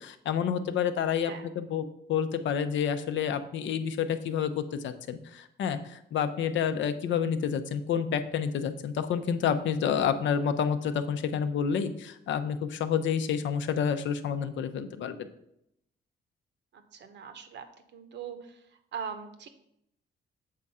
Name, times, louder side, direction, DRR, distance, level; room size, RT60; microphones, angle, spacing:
voice 1, 0.0-15.3, left 7 dB, 70° left, 9 dB, 0.7 m, -29 dB
voice 2, 16.7-17.7 17.9-18.6 18.9-19.5, right 7 dB, 65° right, 8 dB, 0.9 m, -41 dB
7.5 x 3.6 x 5.5 m, 0.76 s
cardioid pair, 90°, 20 cm